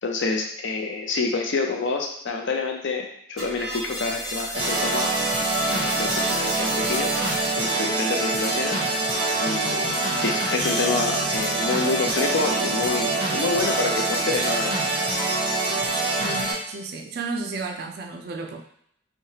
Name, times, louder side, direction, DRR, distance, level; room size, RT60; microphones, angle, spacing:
voice 1, 0.0-5.1 5.7-7.1 7.6-8.8 9.4-9.9 10.2-14.8, left 3 dB, 60° left, 2 dB, 0.5 m, -27 dB
sound 1, 3.4-7.8, equal, ahead, 1.2 m, -33 dB
sound 2, 4.5-16.5, right 2 dB, 25° right, 0.7 m, -25 dB
voice 2, 16.2-18.6, right 3 dB, 50° right, 4 dB, 0.3 m, -33 dB
3.2 x 2.2 x 2.8 m, 0.70 s
head